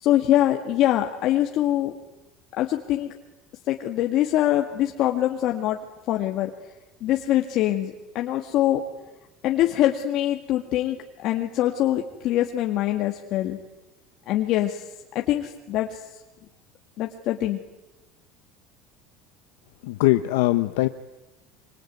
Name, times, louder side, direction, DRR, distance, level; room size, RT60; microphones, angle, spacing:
voice 1, 0.0-1.9 2.6-3.1 3.7-5.8 6.1-6.5 7.0-8.8 9.4-11.0 11.2-13.6 14.3-14.8 15.2-16.0 17.0-17.6, left 13 dB, 55° left, 3 dB, 1.9 m, -23 dB
voice 2, 19.8-20.9, left 18 dB, 90° left, 9 dB, 0.9 m, -21 dB
25.5 x 24.5 x 9.4 m, 1.0 s
cardioid pair, 135°, 0 cm